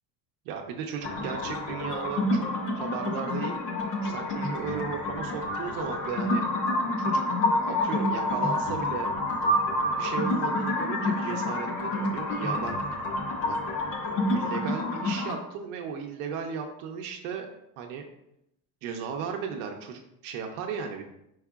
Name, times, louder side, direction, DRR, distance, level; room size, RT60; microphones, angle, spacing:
voice 1, 0.5-2.4 2.7-3.6 4.0-6.4 7.0-7.2 7.6-9.1 10.0-12.8 13.5-13.6 14.3-17.5 17.8-18.0 18.8-21.0, right 6 dB, 70° right, 3 dB, 0.7 m, -35 dB
sound 1, 1.0-15.3, left 1 dB, 35° left, 0.4 m, -28 dB
4.8 x 4.6 x 2.3 m, 0.81 s
cardioid pair, 180°, 46 cm